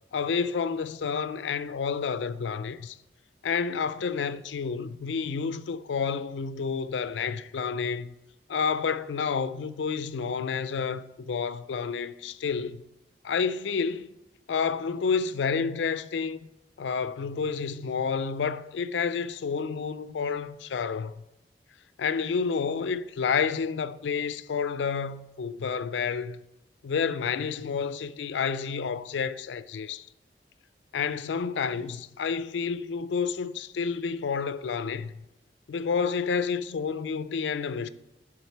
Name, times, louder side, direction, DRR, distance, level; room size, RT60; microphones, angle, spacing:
voice 1, 0.1-3.0 3.4-8.1 8.5-12.8 13.2-14.1 14.5-16.4 16.8-21.2 22.0-26.4 26.8-30.1 30.9-35.1 35.7-37.9, left 5 dB, 90° left, 0.4 m, -29 dB
10.5 x 3.6 x 4.4 m
head